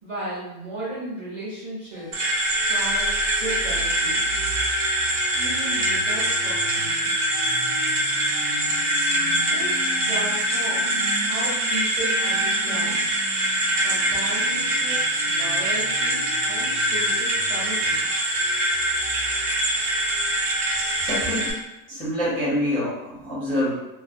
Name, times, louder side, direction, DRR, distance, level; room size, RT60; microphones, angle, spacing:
voice 1, 0.0-3.1 3.4-4.5 5.3-7.2 9.5-13.1 13.8-18.1, right 1 dB, 35° right, -8 dB, 1.0 m, -35 dB
sound 1, 1.9-21.7, left 1 dB, 60° left, 1.1 m, -40 dB
sound 2, 2.1-21.5, right 1 dB, 70° right, 1.1 m, -24 dB
voice 2, 20.9-21.6 21.9-23.7, left 1 dB, 10° left, -8 dB, 0.5 m, -26 dB
3.2 x 2.5 x 2.3 m, 0.97 s
omnidirectional pair, 1.7 m